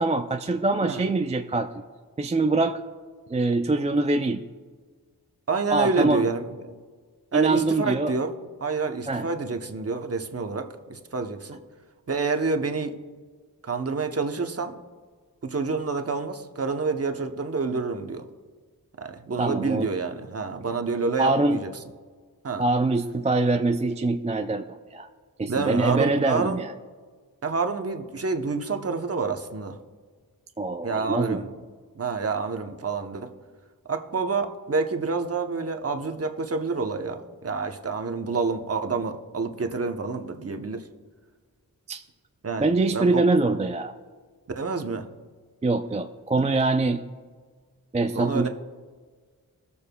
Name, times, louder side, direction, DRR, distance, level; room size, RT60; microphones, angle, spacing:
voice 1, 0.0-1.7 2.2-2.8 3.3-4.4 5.7-6.3 7.3-8.1 9.1-9.3 19.4-19.9 21.2-21.6 22.6-25.1 25.4-26.7 30.6-31.4 41.9-42.0 42.6-44.0 45.6-47.0 47.9-48.5, right 2 dB, 20° right, 7 dB, 0.4 m, -24 dB
voice 2, 5.5-6.8 7.3-8.3 8.6-11.6 12.1-12.9 13.6-14.8 15.4-18.2 19.0-21.7 22.4-22.6 25.5-26.6 27.4-29.8 30.8-31.5 32.0-33.3 33.9-40.8 42.4-43.2 44.6-45.1 48.1-48.5, right 4 dB, 40° right, 5 dB, 0.8 m, -28 dB
20.0 x 7.0 x 2.2 m, 1.5 s
wide cardioid pair, 60°, 37 cm